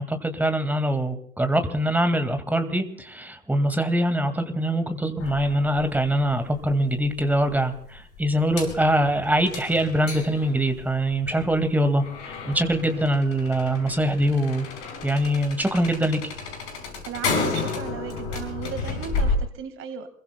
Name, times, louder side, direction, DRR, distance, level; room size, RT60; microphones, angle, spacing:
voice 1, 0.0-14.7 15.0-16.2, right 1 dB, 5° right, 8 dB, 2.0 m, -23 dB
sound 1, 5.2-19.4, left 4 dB, 55° left, 5.7 m, -32 dB
voice 2, 17.0-20.1, right 7 dB, 30° right, 10 dB, 1.8 m, -36 dB
27.5 x 22.0 x 2.2 m, 0.63 s
figure-of-eight pair, 85°, 41 cm